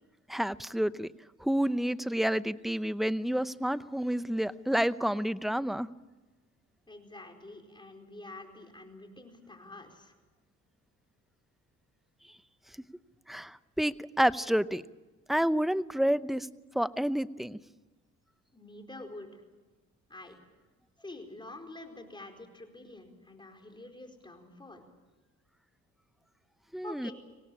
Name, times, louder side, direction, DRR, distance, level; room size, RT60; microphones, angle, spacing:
voice 1, 0.3-1.1 1.4-5.9 13.3-14.8 15.3-16.5 16.7-17.6 26.7-27.1, equal, ahead, 14 dB, 0.7 m, -29 dB
voice 2, 6.9-10.1 18.5-19.4 20.1-20.4 21.0-24.8 26.8-27.1, left 2 dB, 15° left, 3 dB, 4.6 m, -47 dB
25.0 x 18.0 x 8.8 m, 1.2 s
cardioid pair, 90°, 30 cm